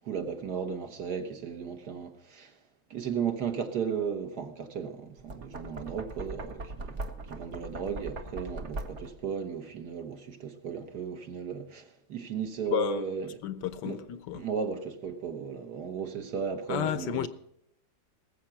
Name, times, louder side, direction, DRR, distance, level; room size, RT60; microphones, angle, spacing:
voice 1, 0.0-2.5 2.9-7.0 7.3-13.3 13.8-14.0 14.3-17.3, right 6 dB, 60° right, 1.8 m, -35 dB
Knock, 5.1-9.3, right 2 dB, 45° right, 1.2 m, -40 dB
voice 2, 12.7-13.0 13.4-14.5 16.7-17.3, left 11 dB, 70° left, 1.2 m, -31 dB
19.0 x 7.8 x 5.8 m
omnidirectional pair, 2.1 m